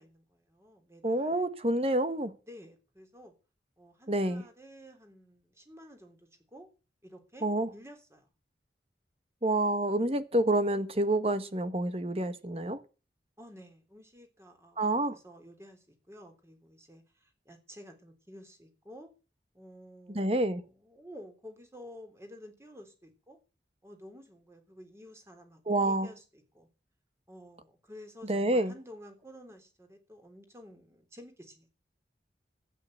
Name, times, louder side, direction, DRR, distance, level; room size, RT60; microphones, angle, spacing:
voice 1, 0.0-1.4 2.5-3.4 3.8-6.7 7.0-8.3 13.4-19.1 19.5-23.4 23.8-26.7 27.3-31.7, equal, 15° right, 3.6 m, -52 dB
voice 2, 1.0-2.3 4.1-4.4 7.4-7.7 9.4-12.8 14.8-15.2 20.1-20.6 25.7-26.1 28.2-28.7, right 1 dB, 35° right, 1.4 m, -28 dB
12.5 x 9.5 x 8.0 m
head